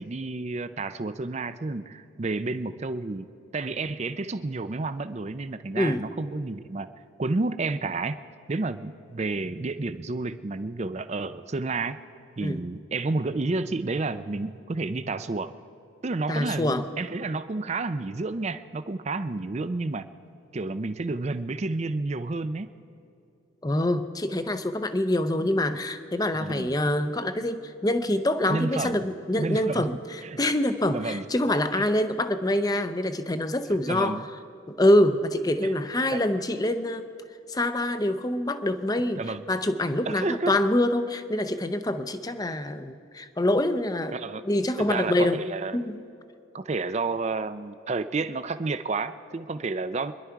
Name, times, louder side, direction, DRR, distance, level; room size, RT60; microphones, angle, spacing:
voice 1, 0.0-6.9 7.2-8.2 8.5-12.0 12.4-15.5 16.0-20.1 20.5-22.7 26.4-26.7 28.5-29.0 29.4-29.9 30.2-30.4 30.9-31.3 31.8-31.9 33.8-34.2 35.6-35.7 36.1-36.2 39.2-39.4 40.1-40.5 44.1-44.4 44.8-45.8 46.5-50.1, right 3 dB, 35° right, 12 dB, 0.4 m, -30 dB
voice 2, 5.7-6.1 12.4-12.6 16.3-16.9 23.6-34.3 34.7-37.1 37.5-39.2 39.5-44.2 44.4-45.4 45.7-46.0, left 1 dB, 20° left, 10 dB, 0.6 m, -25 dB
26.0 x 11.0 x 4.7 m, 2.6 s
head